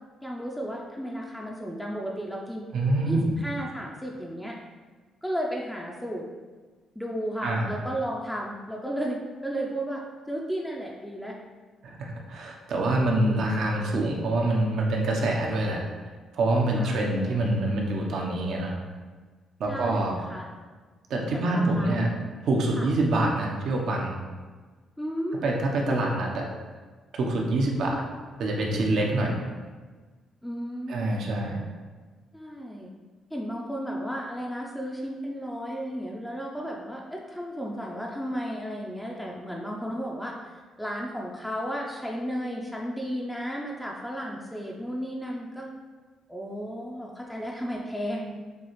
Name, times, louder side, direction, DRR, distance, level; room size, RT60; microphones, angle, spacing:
voice 1, 0.2-2.7 3.0-4.6 5.2-6.2 7.0-11.3 16.7-17.4 19.7-20.6 21.3-22.3 22.8-22.9 25.0-25.5 27.6-28.1 29.2-29.4 30.4-31.0 32.3-32.9 33.3-45.7 46.3-48.3, equal, 5° left, -2 dB, 0.5 m, -34 dB
voice 2, 2.7-3.3 7.4-7.8 11.8-15.8 16.3-18.8 19.6-20.2 21.1-22.1 22.4-24.1 25.4-26.5 27.1-28.0 28.4-29.4 30.9-31.6, right 2 dB, 70° right, 0 dB, 0.8 m, -25 dB
6.9 x 2.4 x 3.1 m, 1.4 s
cardioid pair, 90°, 0 cm